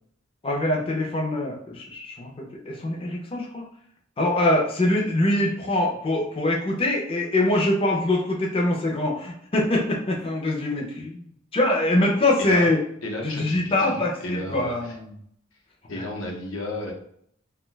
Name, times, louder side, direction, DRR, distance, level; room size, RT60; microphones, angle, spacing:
voice 1, 0.4-3.7 4.2-11.2 11.5-12.8 13.2-15.2, left 1 dB, 25° left, -2 dB, 0.5 m, -24 dB
voice 2, 13.0-15.0 15.9-16.9, left 1 dB, 75° left, 1 dB, 0.7 m, -33 dB
2.6 x 2.2 x 3.1 m, 0.67 s
head